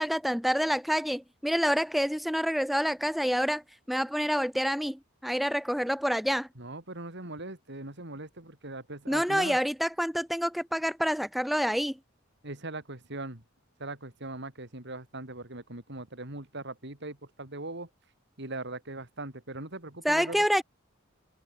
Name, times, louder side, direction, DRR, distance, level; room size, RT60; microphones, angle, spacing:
voice 1, 0.0-3.6 3.9-6.5 9.1-12.0 20.0-20.6, equal, ahead, 0.4 m, -27 dB
voice 2, 6.6-9.6 12.4-13.4 13.8-17.9 18.4-20.5, right 2 dB, 60° right, 4.6 m, -40 dB
head